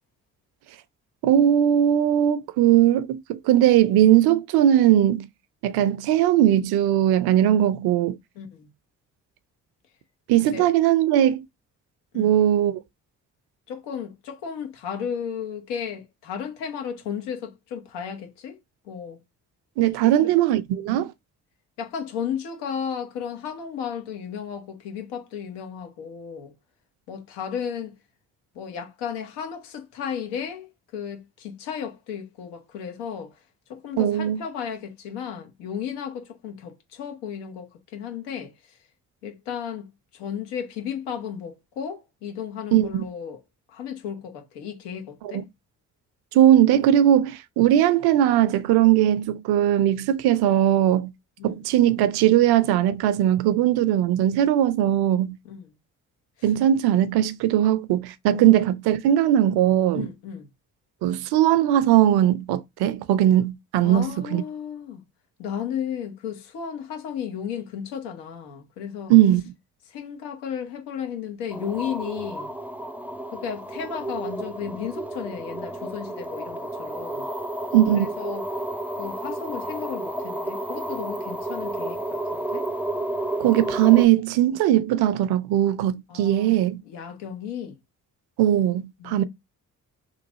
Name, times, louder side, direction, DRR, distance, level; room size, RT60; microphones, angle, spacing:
voice 1, 1.2-5.3 5.6-8.2 10.3-11.4 12.1-12.8 19.8-21.1 34.0-34.4 42.7-43.0 45.2-45.4 46.3-51.1 51.4-55.4 56.4-60.1 61.0-64.4 69.1-69.4 77.7-78.1 83.4-86.8 88.4-89.2, right 12 dB, 65° right, 0.5 m, -19 dB
voice 2, 8.4-8.7 10.5-10.7 12.1-12.4 13.7-18.6 18.8-19.2 20.0-20.3 21.8-26.5 27.1-28.0 28.5-33.4 33.7-38.5 39.2-39.9 40.1-43.4 43.7-45.4 51.4-51.6 55.4-55.7 56.4-56.5 58.3-58.5 59.9-60.5 63.8-65.0 65.4-69.1 69.9-72.5 73.3-77.3 77.9-78.4 79.0-82.7 86.1-86.6 86.9-87.8 89.0-89.2, left 8 dB, 70° left, 0.9 m, -34 dB
sound 1, 71.5-84.1, right 1 dB, 5° right, 0.4 m, -31 dB
3.1 x 2.5 x 3.8 m
hypercardioid pair, 40°, 42 cm